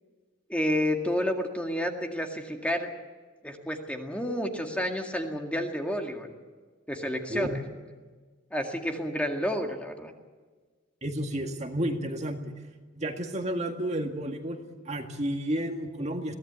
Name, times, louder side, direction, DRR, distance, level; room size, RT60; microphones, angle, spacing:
voice 1, 0.5-2.9 3.4-6.3 6.9-7.6 8.5-10.1, equal, 5° left, 3 dB, 2.0 m, -30 dB
voice 2, 11.0-12.4 12.9-16.3, right 1 dB, 35° right, 4 dB, 2.0 m, -31 dB
22.5 x 17.5 x 8.3 m, 1.4 s
head